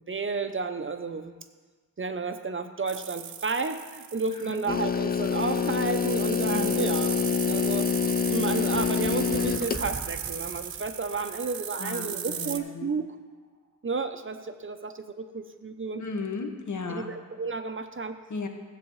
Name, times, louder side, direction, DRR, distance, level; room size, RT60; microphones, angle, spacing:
voice 1, 0.1-1.3 2.0-7.2 7.5-7.9 8.3-13.1 13.8-16.0 16.9-18.2, right 4 dB, 35° right, 8 dB, 0.6 m, -32 dB
sound 1, 2.9-12.6, right 8 dB, 75° right, 0.6 m, -36 dB
sound 2, 4.7-9.9, left 7 dB, 30° left, 0.4 m, -26 dB
voice 2, 6.4-6.8 11.8-13.0 16.0-17.1 18.3-18.5, left 4 dB, 55° left, 4 dB, 1.2 m, -35 dB
sound 3, 8.7-12.2, right 3 dB, 55° right, 2.5 m, -42 dB
16.0 x 8.3 x 3.1 m, 1.4 s
wide cardioid pair, 95°, 34 cm